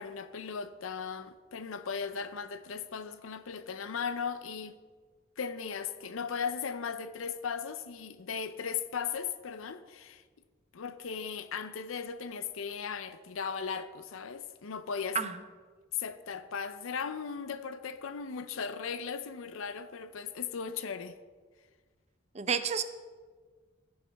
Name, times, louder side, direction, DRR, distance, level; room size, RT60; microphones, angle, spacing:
voice 1, 0.0-4.8 5.4-10.2 10.7-15.3 15.9-21.1, left 6 dB, 85° left, 0.6 m, -37 dB
voice 2, 22.3-22.8, right 6 dB, 35° right, 0.5 m, -30 dB
15.5 x 7.9 x 3.4 m
head